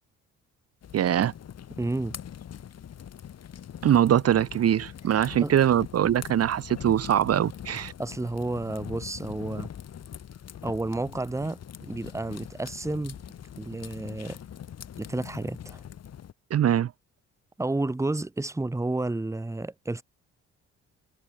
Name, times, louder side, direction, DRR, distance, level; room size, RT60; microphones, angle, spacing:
sound 1, 0.8-16.3, left 9 dB, 55° left, 2.6 m, -43 dB
voice 1, 0.9-1.3 3.8-7.9 16.5-16.9, right 10 dB, 55° right, 0.9 m, -22 dB
voice 2, 1.7-2.2 5.1-5.5 8.0-9.7 10.6-13.2 13.6-14.4 15.0-15.8 17.6-20.0, right 2 dB, 10° right, 1.3 m, -31 dB
cardioid pair, 90°, 30 cm